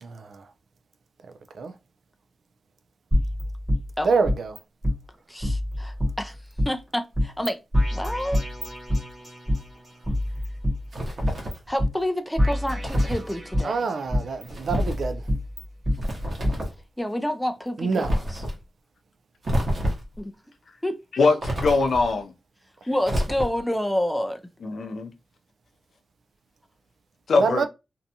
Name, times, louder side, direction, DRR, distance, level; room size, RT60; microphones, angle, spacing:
voice 1, 0.0-0.4 1.5-1.7 4.0-4.6 13.6-15.3 17.8-18.2 27.4-27.7, right 4 dB, 70° right, 0.3 m, -26 dB
sound 1, 3.1-4.6 4.8-4.9 5.4-6.7 7.1-7.5 7.7-9.6 10.0-11.5 11.8-11.9 12.4-13.7 14.1-16.0 16.4-16.5, left 1 dB, 15° right, 1.1 m, -26 dB
voice 2, 5.3-6.4 6.7-7.6 7.9-8.4 11.7-13.9 17.0-18.4 20.2-20.3 20.8-21.0 22.9-24.4, left 1 dB, 5° left, 0.3 m, -28 dB
sound 2, 10.9-11.7 12.8-13.3 14.5-15.1 15.9-16.8 18.0-18.6 19.4-20.2 21.4-22.1 23.0-23.7, equal, 55° right, 0.9 m, -28 dB
voice 3, 21.1-22.3 24.6-25.1 27.3-27.7, left 3 dB, 70° left, 0.5 m, -22 dB
2.5 x 2.2 x 2.7 m
wide cardioid pair, 125°, 0 cm